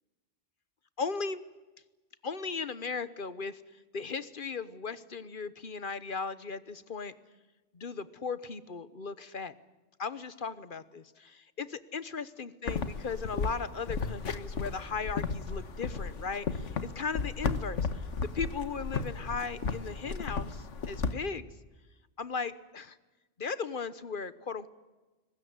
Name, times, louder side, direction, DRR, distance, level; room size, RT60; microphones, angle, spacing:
voice 1, 1.0-1.4 2.2-3.6 3.9-7.1 7.7-9.5 10.0-18.0 18.3-21.5 22.2-23.0 23.4-24.7, left 5 dB, 45° left, 15 dB, 1.2 m, -37 dB
sound 1, 12.7-21.1, left 4 dB, 80° left, 1.6 m, -34 dB
22.5 x 20.0 x 9.6 m, 1.2 s
omnidirectional pair, 1.2 m